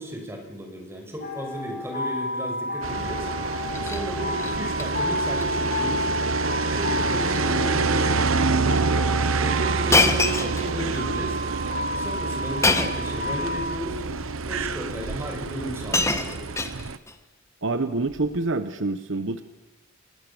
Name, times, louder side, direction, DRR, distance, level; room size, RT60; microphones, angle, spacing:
voice 1, 0.0-3.3 3.8-6.1 6.7-8.9 9.3-11.4 12.0-14.0 14.4-16.4, equal, 15° right, 2 dB, 6.1 m, -34 dB
sound 1, 1.2-13.7, left 1 dB, 50° left, 5.8 m, -31 dB
sound 2, 2.8-17.0, right 4 dB, 90° right, 1.0 m, -27 dB
Shatter, 3.5-4.0 4.4-4.9 5.2-5.4 5.7-5.8 6.7-6.9 7.2-7.5 8.3-8.4 9.9-11.0 12.6-13.1 14.1-14.2 15.3-15.4 15.6-17.1 18.1-18.4, left 3 dB, 15° left, 1.3 m, -25 dB
voice 2, 17.6-19.4, right 3 dB, 65° right, 11 dB, 1.0 m, -26 dB
30.0 x 19.5 x 7.1 m, 1.0 s
head